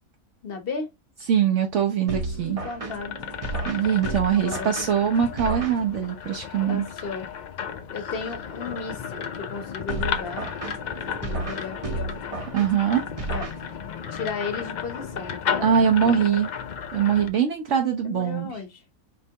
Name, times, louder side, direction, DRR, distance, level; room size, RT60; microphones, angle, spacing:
voice 1, 0.4-0.9 2.4-3.2 4.3-4.7 6.7-7.3 7.9-10.5 11.2-12.1 13.3-13.5 14.1-15.7 18.0-18.8, left 4 dB, 50° left, 1.0 m, -34 dB
voice 2, 1.3-2.6 3.7-6.8 12.5-13.0 15.6-16.5 16.9-18.6, right 8 dB, 65° right, 1.0 m, -22 dB
sound 1, 2.1-6.3 9.9-14.1, right 2 dB, 30° right, 0.7 m, -33 dB
sound 2, 2.3-17.3, left 7 dB, 65° left, 0.4 m, -34 dB
4.4 x 3.2 x 2.7 m
omnidirectional pair, 1.4 m